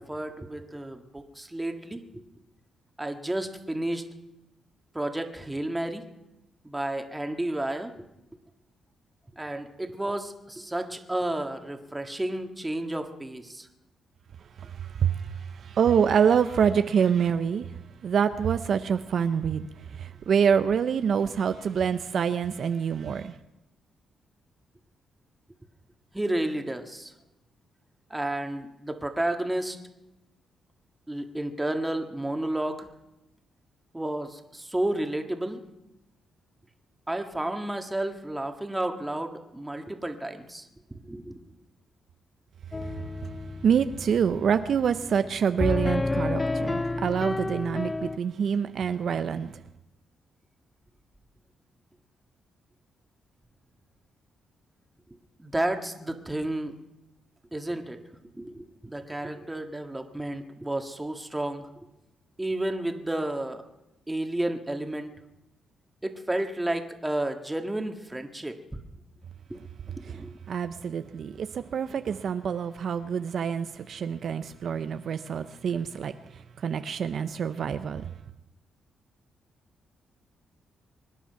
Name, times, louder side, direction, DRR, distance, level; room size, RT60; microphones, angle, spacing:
voice 1, 0.0-2.2 3.0-4.0 4.9-6.0 6.6-8.1 9.4-13.7 26.1-27.1 28.1-29.8 31.1-32.9 33.9-35.6 37.1-40.7 41.0-41.4 55.4-56.7 57.5-58.0 58.4-61.7 62.4-63.6 64.1-65.1 66.0-68.8 69.5-69.6 69.9-70.4, right 1 dB, 10° right, 1.8 m, -31 dB
voice 2, 14.6-17.7 18.0-19.7 19.9-23.3 42.9-43.0 43.6-49.5 70.0-70.2 70.5-78.1, right 7 dB, 60° right, 0.6 m, -26 dB
sound 1, 42.7-48.2, left 2 dB, 20° left, 0.4 m, -31 dB
24.5 x 10.0 x 5.8 m
cardioid pair, 90°, 0 cm